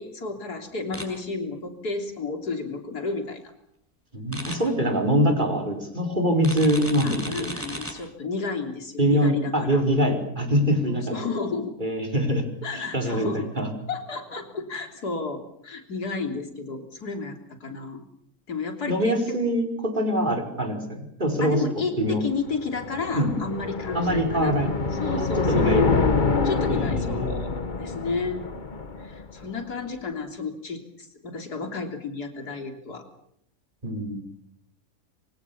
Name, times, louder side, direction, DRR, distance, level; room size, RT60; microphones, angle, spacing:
voice 1, 0.0-3.4 7.0-9.8 10.9-11.8 12.6-13.5 13.9-18.0 18.5-19.4 21.4-24.6 25.0-25.8 26.4-27.5 27.8-28.4 29.0-33.1, left 4 dB, 80° left, 5 dB, 3.9 m, -32 dB
sound 1, 0.9-1.1 4.3-4.6 6.4-7.9, equal, 10° right, 6.7 m, -34 dB
voice 2, 4.1-7.6 9.0-11.2 11.8-12.4 12.7-13.3 13.5-13.7 18.9-22.2 23.1-23.3 23.9-24.7 25.2-26.1 26.7-27.4 33.8-34.2, equal, 30° right, 6 dB, 5.3 m, -24 dB
sound 2, 22.1-29.5, left 4 dB, 30° left, 1.4 m, -26 dB
27.0 x 26.0 x 7.2 m, 0.76 s
omnidirectional pair, 1.7 m